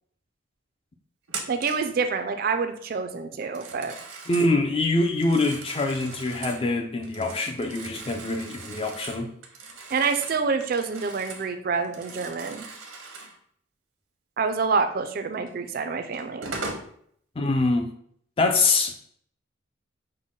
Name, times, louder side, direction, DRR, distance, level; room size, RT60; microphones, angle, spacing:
Telephone, 1.3-1.9 3.4-4.6 5.1-6.7 7.0-11.5 11.8-13.4 15.5-15.6 16.1-16.9, right 4 dB, 85° right, 0.8 m, -39 dB
voice 1, 1.5-4.0 9.9-12.7 14.4-16.5, right 5 dB, 45° right, 0.4 m, -27 dB
voice 2, 4.3-9.3 17.4-17.9 18.4-18.9, left 2 dB, 30° left, 0.4 m, -24 dB
5.4 x 2.1 x 3.6 m
head